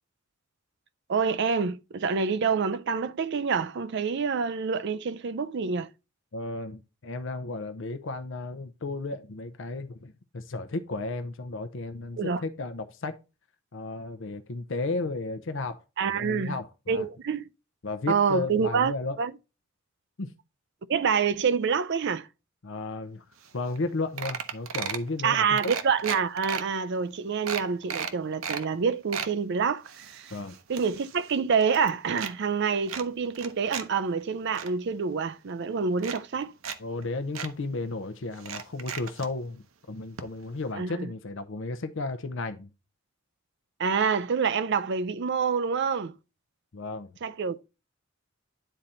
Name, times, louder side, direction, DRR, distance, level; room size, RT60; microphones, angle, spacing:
voice 1, 1.1-5.9 12.2-12.4 16.0-16.6 16.9-17.5 18.1-19.3 20.9-22.3 25.2-30.3 30.7-36.5 40.8-41.1 43.8-46.1 47.2-47.6, right 5 dB, 55° right, 0.5 m, -27 dB
voice 2, 6.3-13.1 13.7-15.8 16.2-17.1 17.8-19.2 20.2-20.3 22.6-23.2 23.5-25.6 30.3-30.6 36.8-42.7 46.7-47.1, left 3 dB, 65° left, 0.7 m, -34 dB
sound 1, 23.5-23.6 23.8-23.9 24.2-25.1 25.6-26.6 27.1-27.2 27.5-28.6 28.9-29.3 29.8-31.4 31.6-32.3 32.9-33.8 34.2-34.7 35.5-35.6 36.0-36.8 37.0-37.1 37.3-37.5 38.4-39.3 40.2-40.3 40.6-40.7, right 7 dB, 85° right, 0.8 m, -35 dB
10.0 x 3.9 x 4.2 m
head